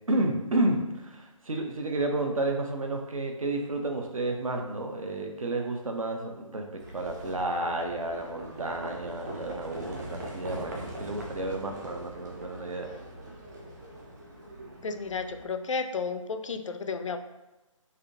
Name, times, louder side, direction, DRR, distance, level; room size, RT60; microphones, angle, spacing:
voice 1, 0.1-6.7 6.9-12.9, right 2 dB, 75° right, 2 dB, 0.7 m, -31 dB
Livestock farm animals working animals, 6.8-15.4, right 1 dB, 30° right, 0.6 m, -42 dB
voice 2, 14.8-17.2, left 4 dB, 65° left, 8 dB, 0.4 m, -32 dB
3.5 x 2.7 x 3.5 m, 1.1 s
figure-of-eight pair, 150°, 17 cm